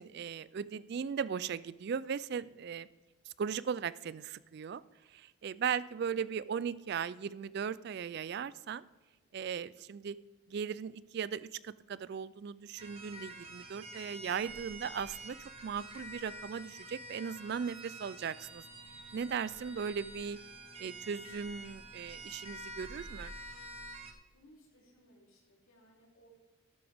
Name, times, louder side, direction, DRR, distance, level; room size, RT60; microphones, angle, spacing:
voice 1, 0.0-2.9 3.3-4.8 5.1-8.8 9.3-10.2 10.5-15.4 15.6-18.6 19.1-20.4 20.8-23.3, right 7 dB, 50° right, 18 dB, 0.3 m, -38 dB
sound 1, 12.8-24.1, right 1 dB, 25° right, 1.0 m, -48 dB
voice 2, 24.3-26.3, equal, 75° left, -2 dB, 3.3 m, -63 dB
12.5 x 12.0 x 3.5 m, 1.3 s
head